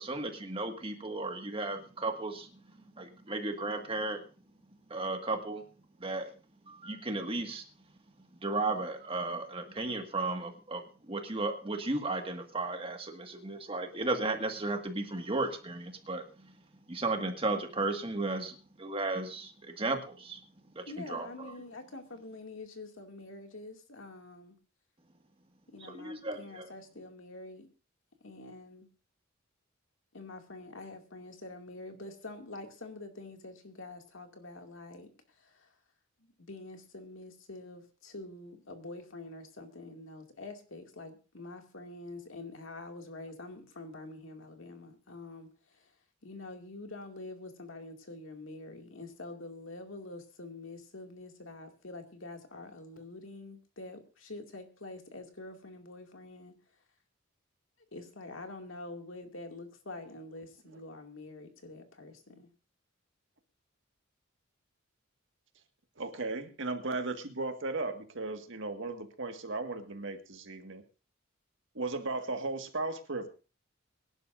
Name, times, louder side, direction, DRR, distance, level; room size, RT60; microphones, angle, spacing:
voice 1, 0.0-4.2 4.9-5.6 6.0-6.3 6.7-7.6 8.4-16.5 16.9-20.4 20.7-21.5 25.8-26.7, right 2 dB, 25° right, 5 dB, 1.8 m, -35 dB
voice 2, 20.9-24.6 25.7-27.7 28.2-28.9 30.1-35.7 36.5-45.9 46.2-56.5 57.9-62.5, left 2 dB, 70° left, 4 dB, 2.3 m, -46 dB
voice 3, 66.0-70.8 71.7-73.3, right 3 dB, 65° right, 6 dB, 1.8 m, -36 dB
23.5 x 11.0 x 2.6 m, 0.34 s
head